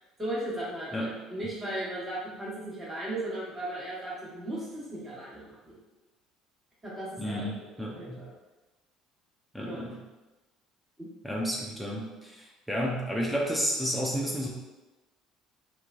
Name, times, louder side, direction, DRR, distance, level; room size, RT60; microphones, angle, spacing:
voice 1, 0.2-5.8 6.8-8.3 9.6-9.8 11.0-11.1, right 1 dB, 20° right, -7 dB, 1.3 m, -37 dB
voice 2, 7.2-8.2 9.5-10.0 11.2-14.5, equal, ahead, -3 dB, 0.5 m, -31 dB
2.9 x 2.2 x 2.5 m, 1.1 s
hypercardioid pair, 60°, 0 cm